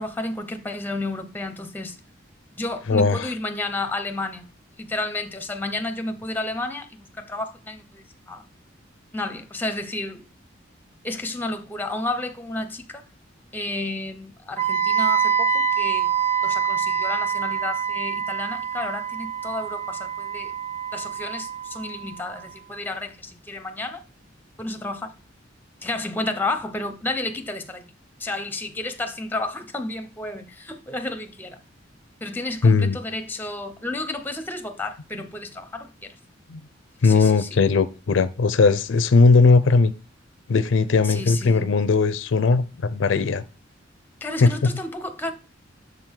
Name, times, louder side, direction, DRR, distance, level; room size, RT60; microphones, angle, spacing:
voice 1, 0.0-2.0 2.6-4.5 4.8-8.4 9.1-10.2 11.0-13.0 13.5-16.1 16.4-20.5 20.9-24.0 24.6-25.1 25.8-27.8 28.2-31.6 32.2-36.1 37.0-37.5 41.0-41.7 44.2-45.3, left 2 dB, 10° left, 0.6 m, -31 dB
voice 2, 2.9-3.3 32.6-33.0 36.5-36.6 37.0-39.9 40.5-43.4 44.4-44.7, left 4 dB, 75° left, 0.5 m, -18 dB
Wind instrument woodwind instrument, 14.6-22.5, right 7 dB, 30° right, 0.7 m, -25 dB
6.9 x 3.8 x 4.4 m
head